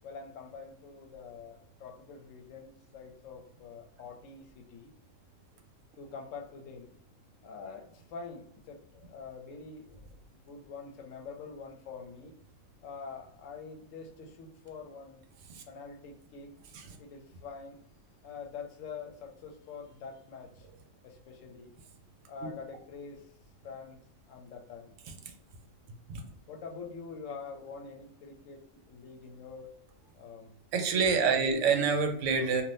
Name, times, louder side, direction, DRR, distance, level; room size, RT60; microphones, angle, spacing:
voice 1, 0.0-4.9 6.0-6.9 7.4-10.0 10.3-12.3 12.8-15.3 15.7-16.5 17.0-17.9 18.2-20.7 21.0-21.7 22.3-23.3 23.6-24.0 24.3-24.9 26.5-29.7 30.1-30.5 31.2-31.5, left 5 dB, 80° left, 3 dB, 0.9 m, -45 dB
voice 2, 30.7-32.6, right 5 dB, 75° right, 5 dB, 0.9 m, -27 dB
2.6 x 2.4 x 3.2 m, 0.68 s
omnidirectional pair, 1.3 m